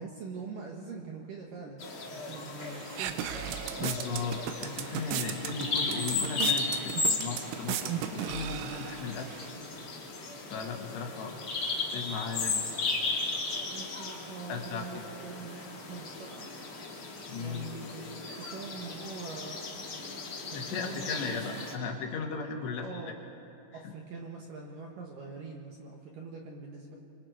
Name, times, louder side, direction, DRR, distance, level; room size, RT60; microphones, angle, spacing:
voice 1, 0.0-1.8 2.1-3.2 13.7-16.5 17.4-19.8 20.5-21.7 22.7-23.2 23.7-27.0, right 4 dB, 65° right, 0 dB, 2.2 m, -43 dB
Bird vocalization bird call bird song, 1.8-21.7, left 3 dB, 40° left, 2.0 m, -36 dB
sound 1, 2.6-9.5, right 10 dB, 90° right, 3.2 m, -37 dB
voice 2, 3.8-9.3 10.5-11.4 11.9-12.7 14.5-14.9 17.3-17.7 20.6-23.1 23.8-23.9, left 4 dB, 70° left, 2 dB, 3.4 m, -36 dB
25.5 x 25.0 x 4.6 m, 2.8 s
omnidirectional pair, 5.4 m